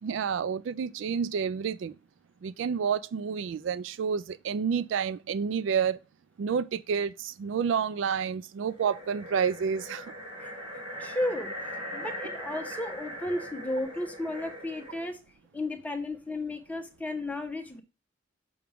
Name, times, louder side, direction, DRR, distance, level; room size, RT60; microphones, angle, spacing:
voice 1, 0.0-1.9 2.4-6.0 6.4-10.1, right 7 dB, 70° right, 0.3 m, -29 dB
sound 1, 8.7-15.1, equal, 25° right, 2.8 m, -40 dB
voice 2, 11.0-11.5 11.9-15.2 15.5-17.8, left 1 dB, 10° left, 1.0 m, -33 dB
6.2 x 5.8 x 3.5 m
head